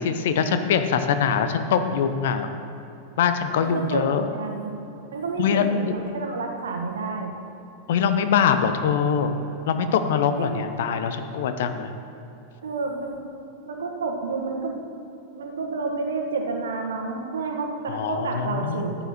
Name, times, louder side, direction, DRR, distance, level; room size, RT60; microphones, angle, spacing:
voice 1, 0.0-2.5 3.2-4.3 5.4-5.6 7.9-9.3 9.7-11.9 17.9-18.8, left 7 dB, 55° left, 9 dB, 0.8 m, -23 dB
voice 2, 3.6-4.7 5.1-7.3 10.4-10.6 12.6-13.2 13.6-14.8 15.3-19.0, right 4 dB, 65° right, 3 dB, 1.5 m, -30 dB
14.0 x 8.8 x 4.3 m, 2.9 s
figure-of-eight pair, 90°, 0 cm